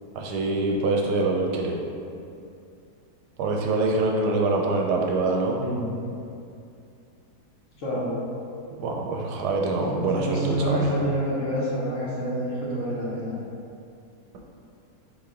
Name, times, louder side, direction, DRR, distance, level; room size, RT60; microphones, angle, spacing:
voice 1, 0.1-1.7 3.4-5.6 8.8-10.8, right 3 dB, 80° right, 0 dB, 1.2 m, -24 dB
voice 2, 5.6-5.9 7.8-8.1 9.7-13.4, equal, 55° left, -6 dB, 1.1 m, -28 dB
4.6 x 3.1 x 3.6 m, 2.5 s
omnidirectional pair, 1.8 m